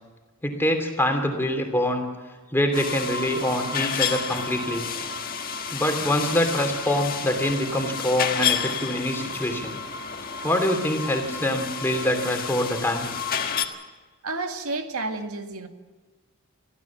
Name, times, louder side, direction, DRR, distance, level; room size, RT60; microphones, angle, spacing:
voice 1, 0.4-2.0 2.5-4.9 5.7-9.8 10.4-13.1, left 1 dB, 10° left, 4 dB, 3.0 m, -25 dB
sound 1, 2.7-13.6, left 6 dB, 40° left, 1.5 m, -30 dB
voice 2, 14.2-15.7, right 3 dB, 80° right, 5 dB, 2.0 m, -30 dB
24.5 x 15.5 x 7.3 m, 1.3 s
head